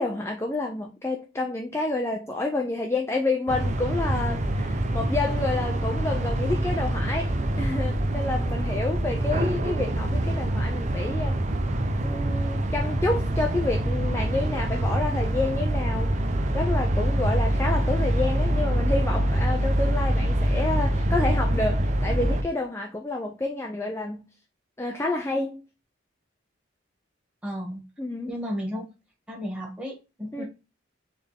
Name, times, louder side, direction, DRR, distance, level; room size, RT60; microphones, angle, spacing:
voice 1, 0.0-11.4 12.0-16.2 16.5-24.3 24.8-25.6 28.0-28.4 30.3-30.4, left 2 dB, 15° left, 0.5 m, -29 dB
sound 1, 3.5-22.4, right 1 dB, 35° right, 0.6 m, -25 dB
voice 2, 27.4-27.8 28.3-28.8 29.3-30.4, equal, 5° right, 1.6 m, -33 dB
4.4 x 3.5 x 3.4 m
head